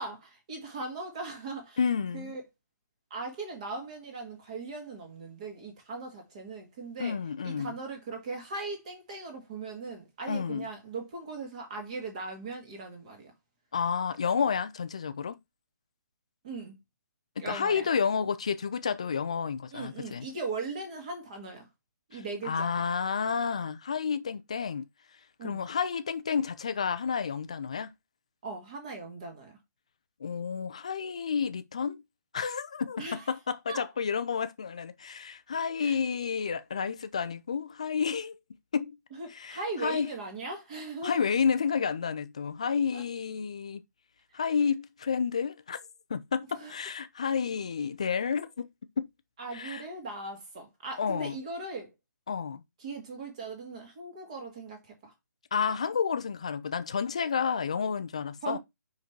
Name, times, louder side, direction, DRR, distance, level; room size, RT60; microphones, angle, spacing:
voice 1, 0.0-1.8 2.1-2.4 3.1-7.2 7.4-13.3 16.4-16.8 17.4-17.9 19.7-21.7 22.1-22.9 25.4-25.7 28.4-29.6 33.0-33.3 33.7-33.9 35.8-36.0 39.1-41.2 42.9-43.0 46.5-46.7 49.4-51.9 52.8-55.1 58.4-58.6, right 3 dB, 20° right, 1.8 m, -39 dB
voice 2, 1.8-2.3 7.0-7.7 10.3-10.7 13.7-15.4 17.4-20.3 22.1-24.9 25.4-27.9 30.2-32.0 32.3-38.4 38.7-39.0 39.3-40.1 41.0-43.8 44.3-45.8 46.1-48.7 49.0-49.1 49.5-49.8 51.0-51.4 52.3-52.6 55.5-58.6, left 6 dB, 20° left, 0.3 m, -30 dB
5.1 x 4.8 x 4.6 m
hypercardioid pair, 175°, 10 cm